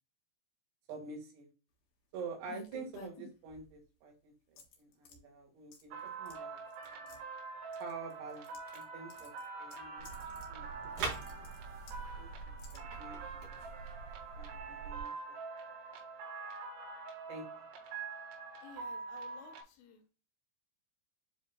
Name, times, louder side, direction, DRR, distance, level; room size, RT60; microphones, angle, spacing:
voice 1, 0.9-1.5 2.1-7.2 7.8-9.3 9.6-10.1 10.5-11.0 12.2-13.6 14.3-15.1 17.3-17.6, right 4 dB, 70° right, 1 dB, 3.8 m, -48 dB
sound 1, 2.5-3.8 4.6-5.2 5.7-6.0 6.3-6.4 6.7-7.2 7.7-8.8 9.1-10.5 10.8-12.0 12.6-12.8, left 4 dB, 65° left, 2.3 m, -53 dB
sound 2, 5.9-19.6, right 4 dB, 85° right, 4.3 m, -45 dB
sound 3, 10.0-15.0, right 4 dB, 50° right, 3.1 m, -44 dB
voice 2, 18.6-20.1, left 6 dB, 80° left, 4 dB, 3.5 m, -55 dB
10.0 x 4.1 x 2.2 m, 0.33 s
omnidirectional pair, 5.8 m